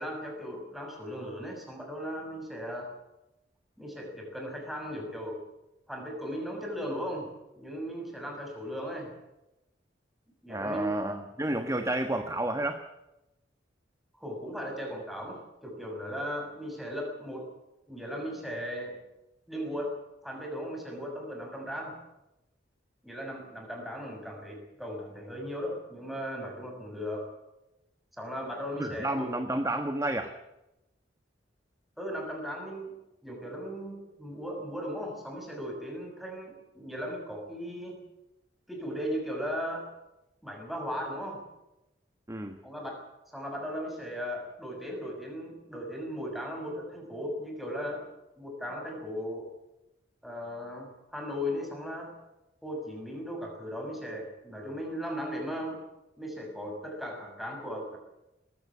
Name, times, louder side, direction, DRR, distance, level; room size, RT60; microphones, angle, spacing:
voice 1, 0.0-2.9 3.8-5.4 5.9-9.1 10.4-11.0 14.2-17.5 17.9-19.0 19.5-19.9 20.2-22.0 23.0-27.3 28.2-29.3 32.0-32.9 33.2-38.0 38.7-39.9 40.4-41.4 42.6-43.1 43.3-48.1 48.4-49.5 50.2-52.1 52.6-55.8 56.2-58.0, equal, ahead, 1 dB, 6.3 m, -37 dB
voice 2, 10.5-12.8 28.8-30.3 42.3-42.6, right 1 dB, 15° right, 6 dB, 1.3 m, -31 dB
20.5 x 15.5 x 9.7 m, 0.92 s
head